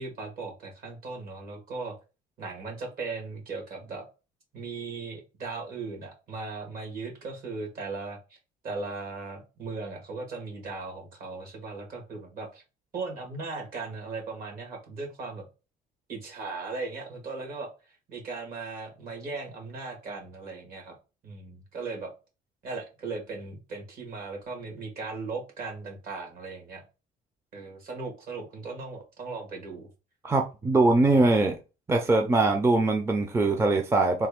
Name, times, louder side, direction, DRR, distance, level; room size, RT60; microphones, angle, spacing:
voice 1, 0.0-1.9 2.4-4.1 4.5-8.4 8.6-12.6 12.9-15.5 16.1-17.7 18.1-21.0 21.2-22.1 22.6-26.8 27.5-29.9, right 3 dB, 60° right, 2 dB, 1.8 m, -37 dB
voice 2, 30.2-31.6 31.9-34.3, right 2 dB, 15° right, 5 dB, 0.5 m, -22 dB
3.4 x 2.4 x 3.5 m, 0.30 s
cardioid pair, 110°, 17 cm